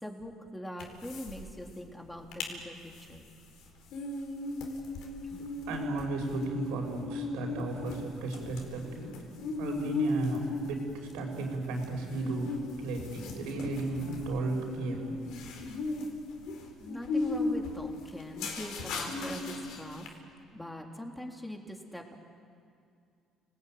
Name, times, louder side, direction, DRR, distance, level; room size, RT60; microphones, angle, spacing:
voice 1, 0.0-3.3 5.3-5.5 16.8-20.1 20.5-22.2, equal, 5° left, 1 dB, 3.6 m, -42 dB
sound 1, 0.8-1.4 1.7-1.8 2.1-2.5 2.9-20.1, left 2 dB, 75° left, 4.4 m, -37 dB
voice 2, 5.4-9.1 9.6-15.2, right 2 dB, 90° right, 2 dB, 6.1 m, -35 dB
30.0 x 19.5 x 9.5 m, 2.4 s
cardioid pair, 100°, 0 cm